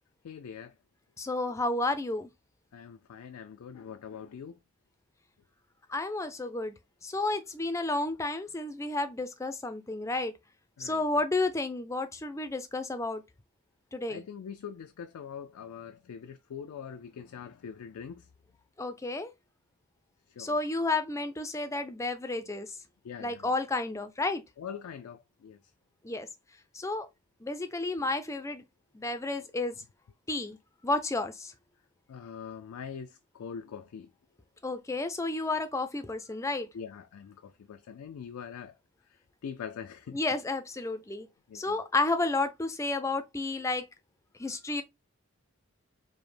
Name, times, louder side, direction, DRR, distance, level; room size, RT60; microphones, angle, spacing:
voice 1, 0.2-0.7 2.7-4.6 10.8-11.0 14.1-18.3 20.3-20.6 23.0-23.5 24.6-25.6 28.0-28.1 32.1-34.1 36.7-38.8 39.1-40.2 41.5-41.8, left 7 dB, 85° left, 0.4 m, -43 dB
voice 2, 1.2-2.3 5.9-6.7 7.0-10.3 10.8-13.2 13.9-14.2 18.8-19.3 20.4-22.8 23.2-24.4 26.0-26.3 26.7-27.1 27.4-28.6 28.9-29.7 30.3-30.6 30.8-31.5 34.6-36.7 40.1-41.3 41.5-43.8 44.4-44.8, left 2 dB, 15° left, 0.4 m, -31 dB
5.0 x 2.0 x 3.2 m
head